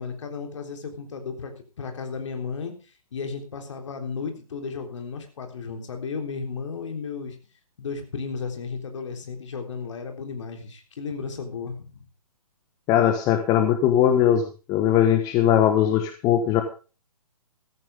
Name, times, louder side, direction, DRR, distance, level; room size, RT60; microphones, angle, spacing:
voice 1, 0.0-2.7 3.1-7.4 7.8-12.0, left 5 dB, 50° left, 5 dB, 3.7 m, -34 dB
voice 2, 12.9-14.4 14.7-16.6, left 10 dB, 20° left, 7 dB, 1.2 m, -20 dB
15.0 x 14.0 x 3.6 m, 0.34 s
figure-of-eight pair, 135°, 19 cm